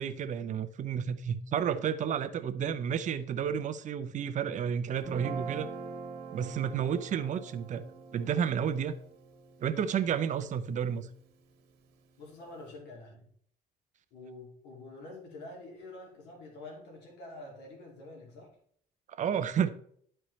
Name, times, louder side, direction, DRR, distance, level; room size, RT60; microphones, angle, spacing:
voice 1, 0.0-5.7 6.3-7.8 8.1-8.9 9.6-11.1 19.2-19.7, right 8 dB, 45° right, 0.7 m, -31 dB
Guitar, 4.9-11.3, right 5 dB, 80° right, 1.6 m, -44 dB
voice 2, 12.2-13.3 14.1-18.5, left 2 dB, 90° left, 2.3 m, -47 dB
11.0 x 4.4 x 3.2 m
cardioid pair, 110°, 17 cm